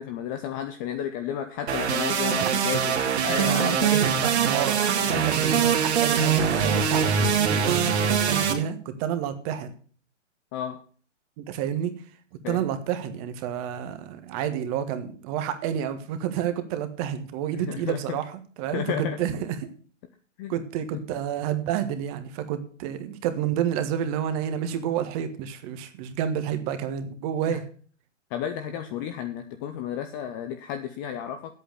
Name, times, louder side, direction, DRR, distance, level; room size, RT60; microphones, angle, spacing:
voice 1, 0.0-3.9 10.5-10.8 12.4-12.6 17.5-18.2 18.7-19.2 20.4-20.5 20.9-21.0 27.5-27.6 28.3-31.5, left 9 dB, 15° left, 7 dB, 0.5 m, -32 dB
sound 1, 1.7-8.5, right 7 dB, 60° right, 2.3 m, -23 dB
voice 2, 3.3-7.8 8.1-9.7 11.4-11.9 12.5-19.7 20.5-27.6, right 9 dB, 30° right, 9 dB, 1.5 m, -29 dB
8.6 x 8.2 x 9.3 m, 0.43 s
hypercardioid pair, 135°, 37 cm